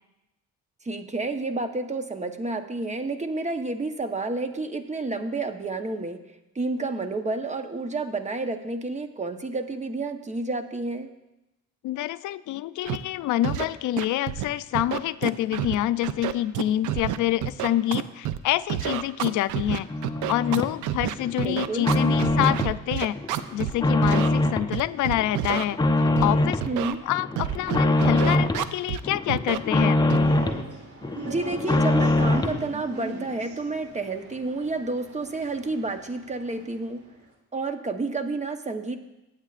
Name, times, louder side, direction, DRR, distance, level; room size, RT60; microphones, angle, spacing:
voice 1, 0.8-6.2 6.5-11.1 21.4-21.9 26.7-27.0 31.2-37.0 37.5-39.0, right 3 dB, 25° right, 7 dB, 1.0 m, -30 dB
voice 2, 11.8-19.9 20.3-23.2 23.5-26.6 27.1-30.0, left 14 dB, 80° left, 14 dB, 0.5 m, -27 dB
Scratching (performance technique), 12.9-13.0 13.4-13.6 14.0-14.4 14.8-15.8 16.0-18.4 18.7-23.7 24.0-24.3 24.7-25.6 26.2-26.3 26.6-27.0 27.4-29.0 29.3-29.6 30.1-30.3, right 12 dB, 90° right, 0.6 m, -28 dB
sound 1, 19.9-20.8 21.2-22.8 23.1-24.7 25.1-26.7 27.1-28.7 29.0-30.6 31.0-32.6, left 2 dB, 15° left, 0.7 m, -23 dB
sound 2, 30.1-37.2, right 3 dB, 50° right, 2.7 m, -41 dB
20.5 x 8.1 x 2.5 m, 0.94 s
cardioid pair, 90°, 30 cm